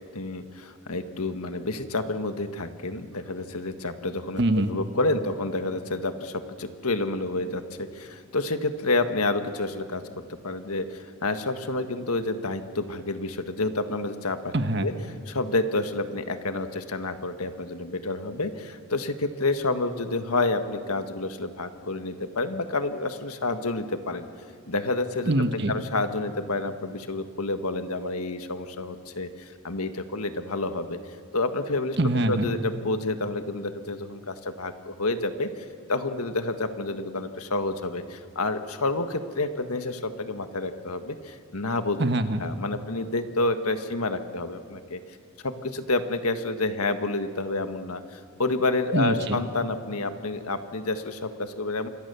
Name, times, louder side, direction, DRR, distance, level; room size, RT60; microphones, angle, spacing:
voice 1, 0.1-4.4 4.7-10.0 10.3-14.5 14.8-14.9 15.3-24.3 24.7-25.3 25.7-31.0 31.3-32.0 32.3-42.0 42.4-45.0 45.4-51.9, left 2 dB, 90° left, 8 dB, 1.6 m, -29 dB
voice 2, 4.4-4.7 14.5-14.9 25.2-25.7 32.0-32.5 42.0-42.4 48.9-49.4, right 1 dB, 50° right, 9 dB, 1.3 m, -24 dB
27.5 x 23.5 x 6.9 m, 2.3 s
head